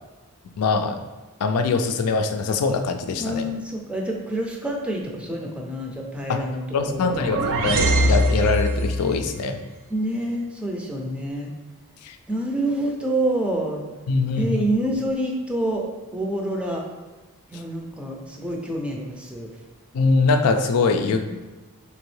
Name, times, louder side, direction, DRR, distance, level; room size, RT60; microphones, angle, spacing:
voice 1, 0.6-1.0 1.4-3.4 6.3-6.4 6.7-9.6 12.0-12.2 14.1-14.6 19.9-21.3, left 4 dB, 80° left, 7 dB, 0.4 m, -22 dB
voice 2, 3.2-7.3 9.9-11.5 12.3-13.8 14.4-15.8 16.1-16.9 17.5-19.5, right 1 dB, 5° right, 0 dB, 0.5 m, -27 dB
sound 1, 6.8-9.1, right 1 dB, 60° right, 0.4 m, -22 dB
3.4 x 3.0 x 3.1 m, 1.2 s
head